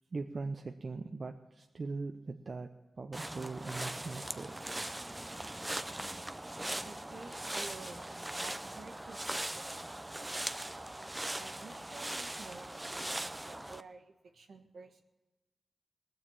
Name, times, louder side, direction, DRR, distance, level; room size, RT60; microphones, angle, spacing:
voice 1, 0.1-2.7 3.0-4.6, right 3 dB, 55° right, 4 dB, 0.7 m, -40 dB
sound 1, 3.1-13.8, right 1 dB, 15° right, 0.6 m, -40 dB
voice 2, 6.8-8.1 8.4-10.4 11.4-15.0, right 4 dB, 75° right, 3 dB, 1.5 m, -52 dB
19.0 x 6.6 x 8.9 m, 1.1 s
cardioid pair, 60°, 0 cm